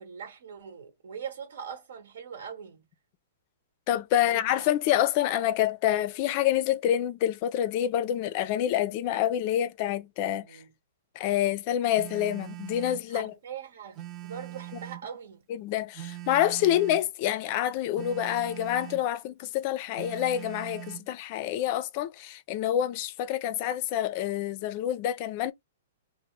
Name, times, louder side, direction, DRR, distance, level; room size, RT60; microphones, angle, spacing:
voice 1, 0.0-2.9 4.2-4.7 10.4-10.7 13.1-15.5 16.6-16.8, right 7 dB, 75° right, 1.1 m, -42 dB
voice 2, 3.9-10.5 11.2-13.3 15.5-25.5, left 12 dB, 35° left, 0.4 m, -27 dB
Telephone, 11.9-13.1 13.9-15.1 15.9-17.1 17.9-19.1 19.9-21.1, right 16 dB, 25° right, 0.4 m, -42 dB
2.8 x 2.0 x 3.1 m
hypercardioid pair, 160°, 0 cm